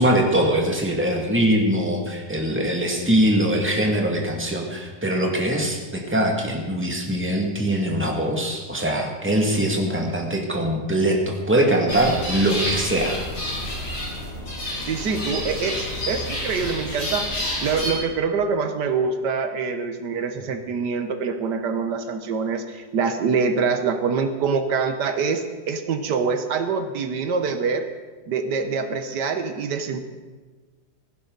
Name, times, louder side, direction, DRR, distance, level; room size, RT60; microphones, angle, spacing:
voice 1, 0.0-13.2, right 1 dB, 5° right, 0 dB, 2.0 m, -22 dB
sound 1, 11.9-17.9, left 1 dB, 65° left, 4.4 m, -29 dB
voice 2, 14.8-27.9 28.3-30.0, right 5 dB, 80° right, 8 dB, 1.6 m, -25 dB
17.0 x 15.5 x 4.0 m, 1.3 s
omnidirectional pair, 1.8 m